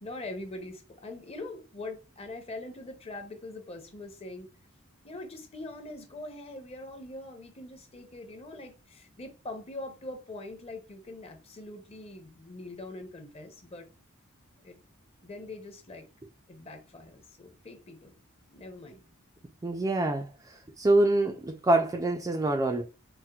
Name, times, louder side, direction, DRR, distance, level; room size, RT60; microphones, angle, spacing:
voice 1, 0.0-4.5 5.0-13.9 14.6-14.8 15.2-16.1 16.5-18.1 18.5-19.0, left 2 dB, 30° left, 0.6 m, -43 dB
voice 2, 19.6-20.3 20.8-22.8, right 2 dB, 15° right, 0.3 m, -25 dB
4.1 x 2.1 x 2.3 m
head